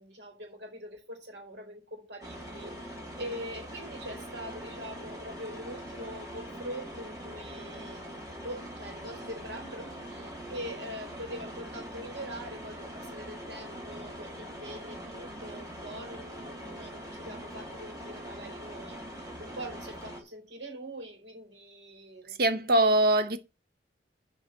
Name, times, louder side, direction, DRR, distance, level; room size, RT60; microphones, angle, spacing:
voice 1, 0.0-8.1 8.4-22.4, equal, 85° right, 4.4 m, -43 dB
sound 1, 2.2-20.2, equal, 20° right, 2.6 m, -42 dB
voice 2, 22.4-23.4, right 1 dB, 60° right, 0.8 m, -22 dB
7.9 x 5.6 x 7.5 m
head